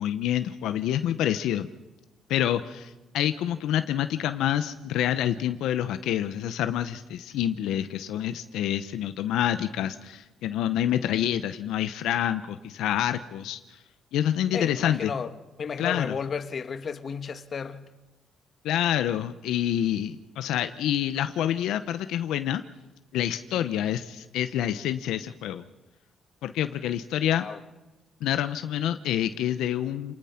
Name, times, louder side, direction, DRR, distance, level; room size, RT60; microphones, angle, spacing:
voice 1, 0.0-1.7 2.3-13.8 14.1-15.1 15.8-16.1 18.6-22.6 23.1-25.6 26.4-27.5 28.2-30.1, left 11 dB, 90° left, 0.9 m, -27 dB
voice 2, 14.5-15.3 15.6-17.9 27.3-27.6, left 6 dB, 45° left, 1.4 m, -33 dB
28.0 x 19.5 x 5.9 m
cardioid pair, 90°, 0 cm